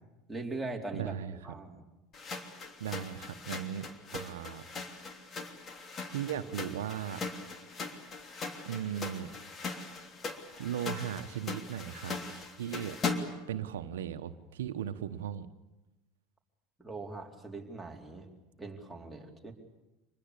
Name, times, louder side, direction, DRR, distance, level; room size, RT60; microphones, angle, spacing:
voice 1, 0.3-1.8 16.8-18.3 18.6-19.5, right 3 dB, 5° right, -1 dB, 4.4 m, -41 dB
voice 2, 0.9-1.4 2.8-4.6 6.0-7.2 8.7-9.3 10.6-13.0 13.5-15.5, right 10 dB, 85° right, 10 dB, 1.1 m, -37 dB
sound 1, 2.1-13.5, left 4 dB, 35° left, 3.1 m, -40 dB
26.0 x 20.5 x 8.4 m, 1.0 s
hypercardioid pair, 95°, 0 cm